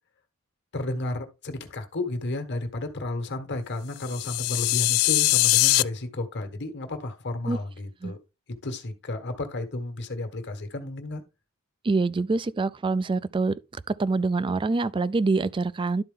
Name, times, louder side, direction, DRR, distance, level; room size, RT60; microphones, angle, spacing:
voice 1, 0.7-8.2 8.6-11.2, left 2 dB, 55° left, 1.4 m, -32 dB
sound 1, 4.0-5.8, left 20 dB, 80° left, 0.3 m, -22 dB
voice 2, 11.8-13.6 13.9-16.0, right 3 dB, 25° right, 0.3 m, -25 dB
11.5 x 4.3 x 3.7 m
head